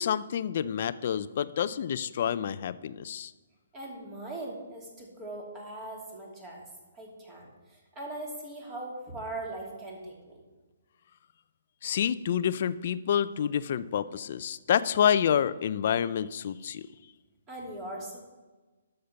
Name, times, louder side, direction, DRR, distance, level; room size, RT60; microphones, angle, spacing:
voice 1, 0.0-3.3 11.8-16.9, left 9 dB, 50° left, 15 dB, 0.5 m, -28 dB
voice 2, 3.7-6.7 6.9-10.4 17.5-18.2, right 2 dB, 20° right, -2 dB, 2.7 m, -40 dB
12.0 x 6.7 x 5.8 m, 1.2 s
hypercardioid pair, 155°, 0 cm